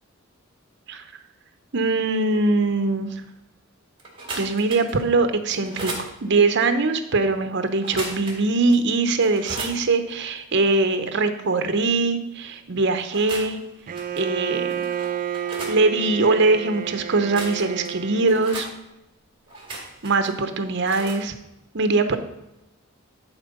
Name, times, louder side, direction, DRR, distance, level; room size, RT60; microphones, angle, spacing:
voice 1, 1.7-3.1 4.4-13.6 14.2-14.7 15.7-18.7 20.0-21.3 21.7-22.2, right 3 dB, 60° right, 9 dB, 0.9 m, -22 dB
sound 1, 4.0-5.0 5.5-6.1 7.8-8.5 8.7-8.8 9.2-9.8 13.0-13.6 13.9-14.2 14.7-15.8 17.1-17.9 18.3-18.7 19.5-20.3 20.9-21.2, right 2 dB, 25° right, 2.2 m, -35 dB
Bowed string instrument, 13.9-18.6, right 8 dB, 40° right, 0.4 m, -30 dB
10.5 x 4.5 x 5.3 m, 0.91 s
head